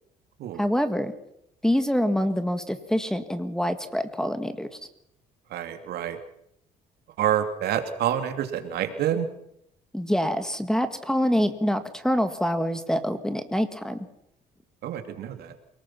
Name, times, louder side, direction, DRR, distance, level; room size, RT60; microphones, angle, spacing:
voice 1, 0.6-1.1 1.6-4.7 9.9-14.0, equal, 5° left, 9 dB, 1.9 m, -25 dB
voice 2, 5.5-6.2 7.2-9.3 14.8-15.5, right 10 dB, 70° right, 7 dB, 2.9 m, -27 dB
28.0 x 19.5 x 6.0 m, 0.76 s
cardioid pair, 110°, 17 cm